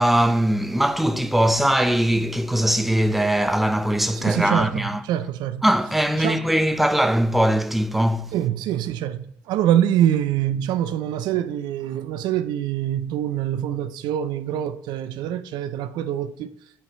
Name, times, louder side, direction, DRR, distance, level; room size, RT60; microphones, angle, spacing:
voice 1, 0.0-5.0 5.6-8.3, right 1 dB, ahead, 0.5 m, -21 dB
voice 2, 4.1-5.7 6.2-6.4 8.3-16.5, right 11 dB, 70° right, 0.4 m, -25 dB
8.0 x 4.8 x 2.9 m
supercardioid pair, 75°, 8 cm